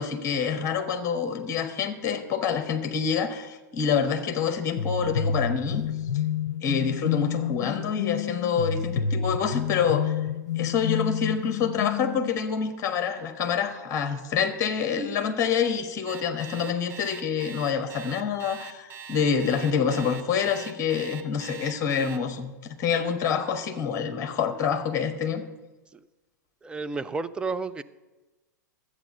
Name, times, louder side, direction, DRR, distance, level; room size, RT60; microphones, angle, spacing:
voice 1, 0.0-5.8 6.6-10.1 10.5-25.5, left 7 dB, 30° left, 7 dB, 1.4 m, -27 dB
sound 1, 4.7-12.4, left 7 dB, 60° left, 0.5 m, -29 dB
Alarm, 16.1-22.2, right 6 dB, 25° right, 1.0 m, -42 dB
voice 2, 26.6-27.8, right 4 dB, 10° right, 10 dB, 0.4 m, -31 dB
12.0 x 8.2 x 6.6 m, 1.1 s
figure-of-eight pair, 95°, 10 cm